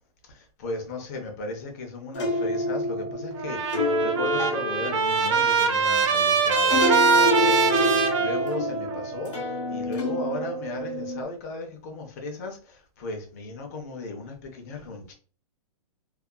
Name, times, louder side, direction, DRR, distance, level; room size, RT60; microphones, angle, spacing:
voice 1, 0.3-9.3 9.7-15.1, left 3 dB, 25° left, 0.5 m, -36 dB
sound 1, 2.1-11.2, equal, 50° left, 0.8 m, -28 dB
Trumpet, 3.4-9.0, right 5 dB, 55° right, 0.6 m, -23 dB
2.6 x 2.3 x 2.2 m
hypercardioid pair, 170°, 19 cm